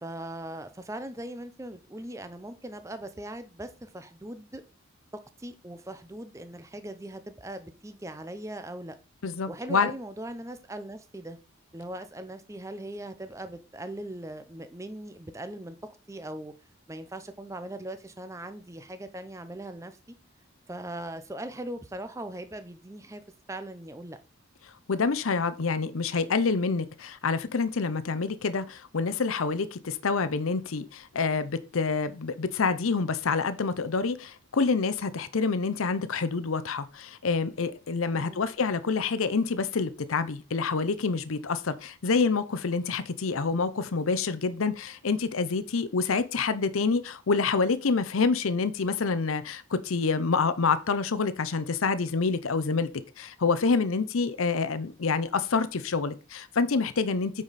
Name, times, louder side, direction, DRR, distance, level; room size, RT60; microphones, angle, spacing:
voice 1, 0.0-4.6 5.1-8.9 9.5-11.4 11.7-15.8 16.1-16.5 16.9-20.0 20.7-23.2 23.5-24.2 38.1-38.5, right 1 dB, 15° right, 0.6 m, -40 dB
voice 2, 9.2-9.9 24.9-52.9 53.2-57.3, left 4 dB, 85° left, 0.7 m, -27 dB
8.9 x 5.0 x 4.1 m
head